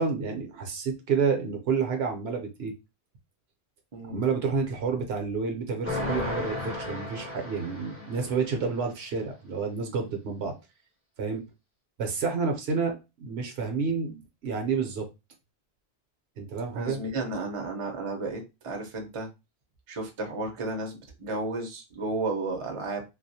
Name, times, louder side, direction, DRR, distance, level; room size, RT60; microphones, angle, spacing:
voice 1, 0.0-2.7 4.1-10.5 11.2-11.4 12.0-15.0 16.4-17.0, right 5 dB, 70° right, 4 dB, 0.8 m, -29 dB
voice 2, 3.9-4.2 16.7-19.3 19.9-23.0, right 2 dB, 35° right, 2 dB, 0.5 m, -33 dB
sound 1, 5.8-8.6, left 2 dB, 15° left, 0.6 m, -34 dB
2.3 x 2.0 x 2.6 m, 0.26 s
omnidirectional pair, 1.1 m